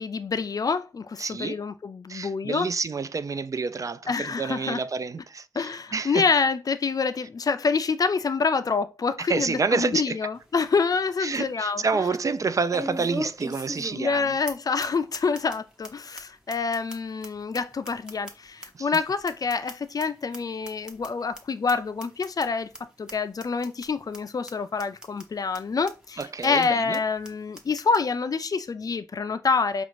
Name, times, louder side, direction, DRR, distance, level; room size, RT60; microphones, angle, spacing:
voice 1, 0.0-2.7 4.1-4.8 5.5-12.0 13.9-22.7 23.0-29.8, left 5 dB, 60° left, 0.4 m, -27 dB
voice 2, 1.2-1.6 2.1-6.2 9.2-10.2 11.2-14.4 18.7-18.9 26.2-27.0, right 4 dB, 50° right, 0.3 m, -28 dB
sound 1, 10.3-10.4 10.9-11.0 12.7-14.2 14.5-14.6 14.8-14.9 15.1-15.5 15.8-15.9 16.2-16.3 16.5-18.7 18.9-20.0 20.3-20.4 20.6-21.1 21.3-21.4 21.7-21.8 22.0-22.4 22.7-22.8 23.1-23.2 23.4-23.9 24.1-24.2 24.5-24.6 24.8-25.2 25.5-25.6 25.9-26.0 26.2-26.7 26.9-27.0 27.2-27.3 27.5-28.0, equal, 10° right, 0.9 m, -37 dB
5.1 x 2.5 x 3.0 m
wide cardioid pair, 105°, 7 cm